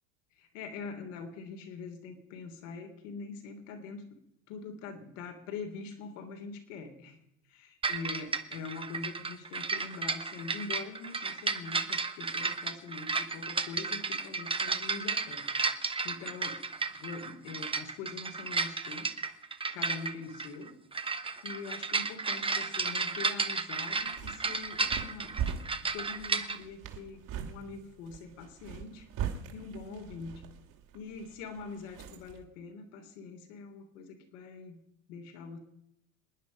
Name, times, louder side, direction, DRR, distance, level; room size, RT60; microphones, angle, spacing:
voice 1, 0.4-4.1 4.5-7.2 7.5-15.7 16.0-19.1 19.5-20.8 21.2-25.4 25.8-29.1 29.5-30.4 30.9-34.8 35.1-35.6, left 4 dB, 65° left, 5 dB, 3.3 m, -44 dB
sound 1, 7.8-26.6, right 4 dB, 15° right, 1.0 m, -33 dB
sound 2, 23.9-32.4, right 8 dB, 50° right, 2.7 m, -41 dB
27.0 x 9.7 x 5.3 m, 0.80 s
hypercardioid pair, 90°, 40 cm